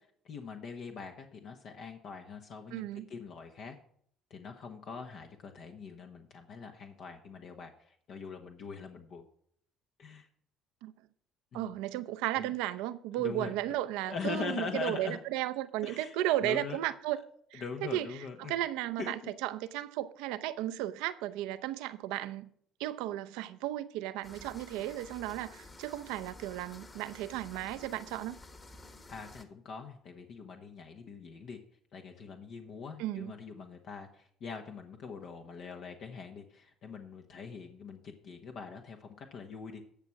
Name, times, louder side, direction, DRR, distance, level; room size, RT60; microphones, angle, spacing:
voice 1, 0.0-3.8 4.3-9.2 10.0-10.3 11.5-11.7 12.4-12.5 13.1-13.5 14.1-15.2 15.8-16.1 16.4-16.8 17.6-18.6 19.0-19.3 29.1-31.6 31.9-39.8, left 5 dB, 60° left, 1.2 m, -42 dB
voice 2, 2.7-3.1 10.8-10.9 11.5-17.2 17.5-22.5 22.8-28.4 33.0-33.3, right 14 dB, 85° right, 0.6 m, -34 dB
sound 1, 24.2-29.4, left 2 dB, 25° left, 1.6 m, -52 dB
10.5 x 6.5 x 5.9 m
supercardioid pair, 80°, 0 cm